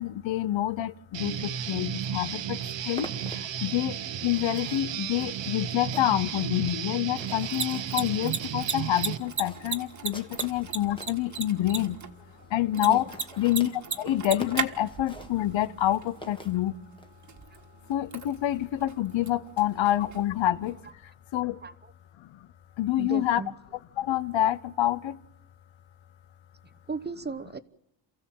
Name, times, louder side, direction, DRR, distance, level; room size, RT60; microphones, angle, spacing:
voice 1, 0.0-2.6 2.9-3.1 3.6-3.9 4.2-12.0 12.5-13.0 13.4-13.7 14.0-16.7 17.9-20.8 21.3-21.5 22.8-23.4 24.0-25.2, left 13 dB, 90° left, 0.8 m, -27 dB
Guitar, 1.1-9.2, right 9 dB, 75° right, 1.1 m, -34 dB
sound 1, 2.3-11.2 11.8-11.9 12.1-12.2 12.4-12.5 12.7-17.1, left 1 dB, 10° left, 1.7 m, -46 dB
Mechanisms, 7.3-20.9, right 6 dB, 40° right, 1.6 m, -38 dB
voice 2, 21.6-21.9 23.0-23.5 26.6-27.6, right 4 dB, 25° right, 0.9 m, -37 dB
28.0 x 15.5 x 7.5 m
cardioid pair, 120°, 44 cm